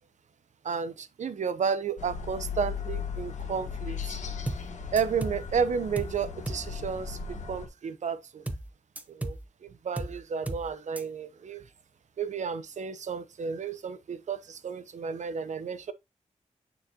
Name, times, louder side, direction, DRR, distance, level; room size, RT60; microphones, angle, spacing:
voice 1, 0.6-4.2 4.9-8.4 9.1-9.4 9.6-11.6 12.2-15.9, right 6 dB, 75° right, 0.8 m, -32 dB
sound 1, 2.0-7.7, left 6 dB, 75° left, 1.4 m, -37 dB
sound 2, 4.5-4.7 5.0-5.4 6.0-6.2 6.5-6.7 8.5-8.7 9.0-9.4 10.0-10.2 10.5-10.7 11.0-11.1, right 1 dB, 10° right, 0.8 m, -34 dB
8.9 x 4.0 x 2.8 m
cardioid pair, 55°, 12 cm